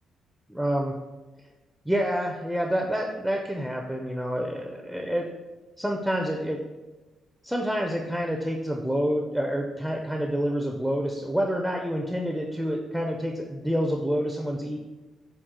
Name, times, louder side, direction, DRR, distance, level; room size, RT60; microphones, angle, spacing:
voice 1, 0.5-0.9 1.9-5.3 5.8-6.6 7.4-14.8, equal, ahead, 1 dB, 0.4 m, -28 dB
4.2 x 2.3 x 3.6 m, 1.2 s
cardioid pair, 90°, 0 cm